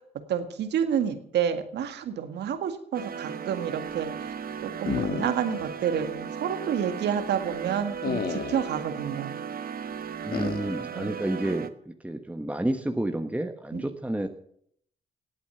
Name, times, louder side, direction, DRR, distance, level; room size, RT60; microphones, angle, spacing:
voice 1, 0.3-4.3 4.6-9.4 10.9-11.2 13.7-13.8, right 8 dB, 75° right, 9 dB, 1.8 m, -29 dB
sound 1, 2.9-11.7, right 7 dB, 55° right, 1.1 m, -36 dB
sound 2, 4.9-5.7 6.0-6.1 8.0-8.8 10.3-10.8, left 6 dB, 60° left, 1.7 m, -31 dB
voice 2, 10.2-14.3, right 1 dB, 10° right, 5 dB, 1.3 m, -30 dB
17.5 x 8.4 x 6.9 m, 0.66 s
supercardioid pair, 55°, 18 cm